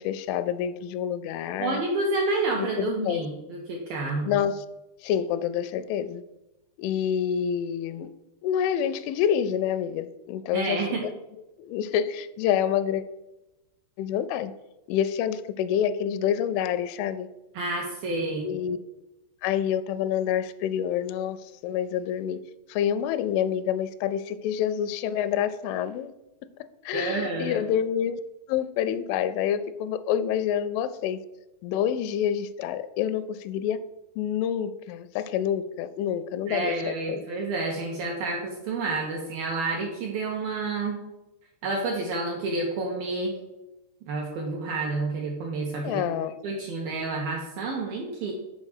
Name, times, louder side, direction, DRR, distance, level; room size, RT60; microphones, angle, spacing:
voice 1, 0.0-1.8 2.6-3.2 4.2-4.7 5.0-6.2 6.8-8.1 8.4-10.8 11.6-13.0 14.0-14.5 14.9-17.3 18.4-18.8 19.4-22.4 22.7-26.1 26.9-28.2 28.5-31.2 31.6-33.8 34.2-37.2 45.8-46.4, left 9 dB, 85° left, 12 dB, 3.0 m, -27 dB
voice 2, 1.6-4.4 10.5-11.0 17.5-18.5 26.9-27.6 36.5-41.0 41.6-43.3 44.1-46.2 46.4-48.3, right 3 dB, 75° right, -1 dB, 2.2 m, -29 dB
7.3 x 4.9 x 6.5 m, 0.98 s
omnidirectional pair, 5.4 m